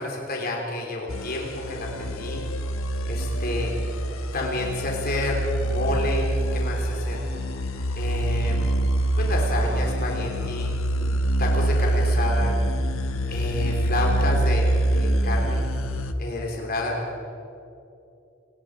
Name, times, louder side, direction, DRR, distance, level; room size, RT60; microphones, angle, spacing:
voice 1, 0.0-2.4 3.1-3.7 4.3-7.2 8.0-8.7 9.2-10.7 11.4-12.6 13.3-15.6 16.2-17.0, left 2 dB, 50° left, 0 dB, 3.7 m, -29 dB
sound 1, 1.1-16.1, right 1 dB, 85° left, 1.3 m, -25 dB
30.0 x 20.0 x 5.0 m, 2.7 s
head